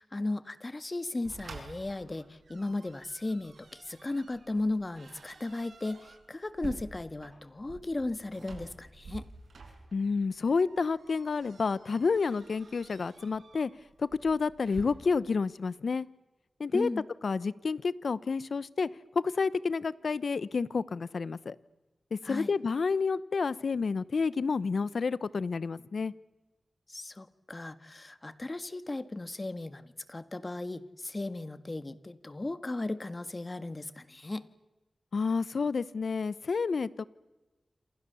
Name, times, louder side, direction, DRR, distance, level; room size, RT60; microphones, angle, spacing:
voice 1, 0.0-9.3 16.7-17.1 22.2-22.5 26.9-34.5, left 2 dB, 40° left, 12 dB, 1.8 m, -36 dB
sound 1, 1.2-14.8, right 4 dB, 90° right, 5.9 m, -50 dB
voice 2, 9.9-13.7 14.0-16.1 16.6-16.9 17.2-18.9 19.1-21.6 22.1-26.1 35.1-37.0, left 4 dB, 80° left, 18 dB, 0.9 m, -29 dB
28.0 x 28.0 x 7.0 m, 1.2 s
cardioid pair, 50°, 0 cm